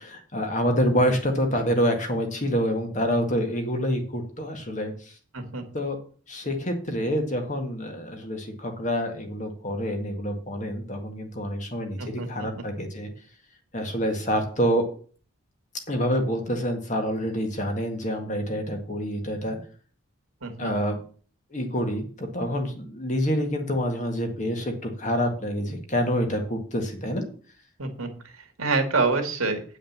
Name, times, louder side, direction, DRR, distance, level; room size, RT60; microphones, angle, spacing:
voice 1, 0.0-4.9 5.7-6.0 6.3-13.1 13.7-14.8 15.9-19.6 20.6-21.0 21.5-27.3, equal, 35° left, 4 dB, 1.8 m, -27 dB
voice 2, 12.0-12.6 20.4-20.7 27.8-28.1 28.6-29.6, right 3 dB, 90° right, 5 dB, 2.1 m, -26 dB
9.1 x 5.1 x 7.3 m, 0.43 s
head